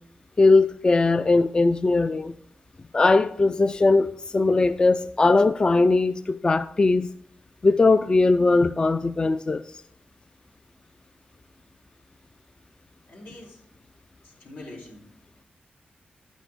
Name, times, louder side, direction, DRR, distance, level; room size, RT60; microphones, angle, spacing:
voice 1, 0.4-2.4 2.9-7.1 7.6-9.7, left 3 dB, 25° left, 0.3 m, -20 dB
voice 2, 13.1-13.6 14.2-15.0, left 2 dB, 85° left, 3.7 m, -43 dB
11.0 x 9.2 x 3.6 m
wide cardioid pair, 115°, 3 cm